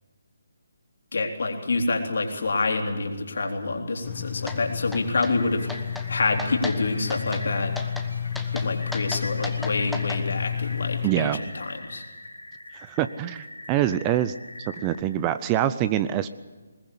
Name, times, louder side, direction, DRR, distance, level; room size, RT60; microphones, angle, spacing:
voice 1, 1.1-7.8 8.5-12.0, left 3 dB, 60° left, 2 dB, 3.6 m, -27 dB
sound 1, 4.0-11.1, left 7 dB, 30° left, 1.2 m, -31 dB
sound 2, 4.5-4.6 4.9-5.3 5.7-6.1 6.4-6.8 7.1-7.4 7.8-8.1 8.3-10.2, left 2 dB, ahead, 1.2 m, -36 dB
sound 3, 5.4-15.0, left 2 dB, 85° left, 4.5 m, -42 dB
voice 2, 11.0-11.4 12.8-14.3 14.7-16.3, right 12 dB, 20° right, 13 dB, 0.6 m, -25 dB
21.0 x 19.5 x 8.3 m, 1.3 s
figure-of-eight pair, 150°, 0 cm